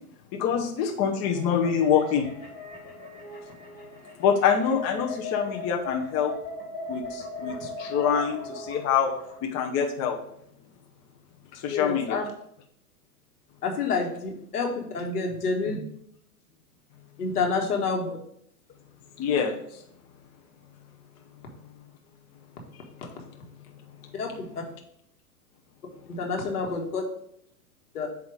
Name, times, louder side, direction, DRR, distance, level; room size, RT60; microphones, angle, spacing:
voice 1, 0.3-2.3 4.2-6.3 6.9-9.1 9.4-10.2 11.5-12.2 19.2-19.6, left 7 dB, 35° left, 2 dB, 0.9 m, -25 dB
sound 1, 1.2-9.4, left 2 dB, 20° left, 2.1 m, -39 dB
voice 2, 11.7-12.2 13.6-15.8 17.2-18.1 24.1-24.6 26.1-27.0 27.9-28.1, left 4 dB, 85° left, 1 dB, 1.6 m, -28 dB
7.9 x 2.9 x 4.9 m, 0.72 s
hypercardioid pair, 110°, 45 cm